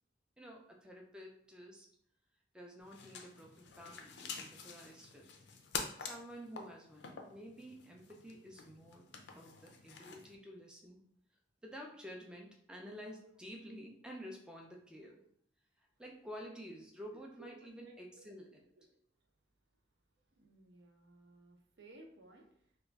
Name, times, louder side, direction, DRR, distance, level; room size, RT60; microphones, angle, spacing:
voice 1, 0.4-1.9 2.5-5.3 6.0-11.0 11.6-15.2 16.0-18.5, equal, 5° right, 0 dB, 0.4 m, -51 dB
sound 1, 2.8-10.3, left 5 dB, 65° left, 0.4 m, -47 dB
voice 2, 17.1-18.3 18.8-18.9 19.2-19.3 20.3-22.8, right 2 dB, 65° right, 2 dB, 0.6 m, -59 dB
2.9 x 2.3 x 3.4 m, 0.66 s
head